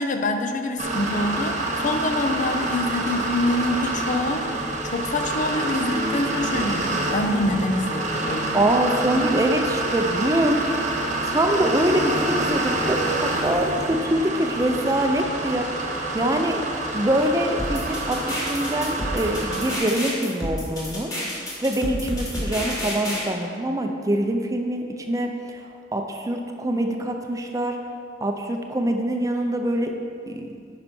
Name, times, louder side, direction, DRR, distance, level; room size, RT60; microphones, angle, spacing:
voice 1, 0.0-4.5 4.8-8.6 16.2-16.3, left 1 dB, 45° left, 6 dB, 0.5 m, -26 dB
sound 1, 0.8-19.8, right 2 dB, 40° right, 1.1 m, -27 dB
voice 2, 8.5-10.6 11.2-15.7 16.1-16.6 16.9-21.1 21.6-25.6 25.9-27.8 28.2-29.9 30.3-30.5, right 1 dB, 20° right, 4 dB, 0.5 m, -24 dB
sound 2, 17.6-23.2, equal, 20° left, 2.0 m, -30 dB
9.8 x 5.8 x 4.3 m, 2.2 s
head